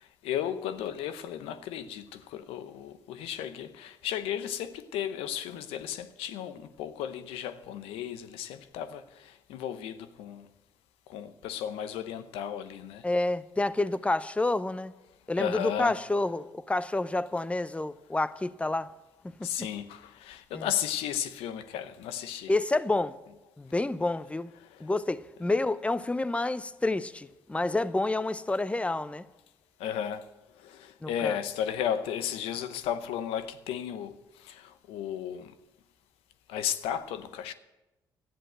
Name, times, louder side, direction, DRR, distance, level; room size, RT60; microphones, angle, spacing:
voice 1, 0.2-9.0 9.5-10.4 11.1-13.0 15.4-16.0 19.4-22.5 29.8-30.2 30.6-34.1 34.5-35.5 36.5-37.5, left 9 dB, 85° left, 0.7 m, -34 dB
voice 2, 13.0-14.9 15.3-18.9 19.4-19.7 20.5-20.7 22.5-23.1 23.6-24.5 24.8-29.3 31.0-31.4, left 2 dB, 15° left, 0.6 m, -29 dB
12.5 x 10.0 x 7.8 m
supercardioid pair, 55°, 9 cm